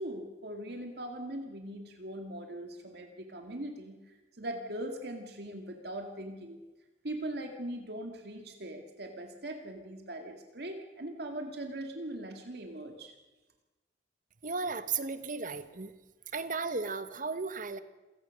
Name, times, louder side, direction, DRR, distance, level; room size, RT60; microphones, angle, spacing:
voice 1, 0.0-6.6 7.0-13.1, right 1 dB, 65° right, 4 dB, 2.0 m, -40 dB
voice 2, 14.4-15.9 16.3-17.8, right 4 dB, 50° right, 12 dB, 1.2 m, -35 dB
27.0 x 17.0 x 6.4 m, 1.2 s
head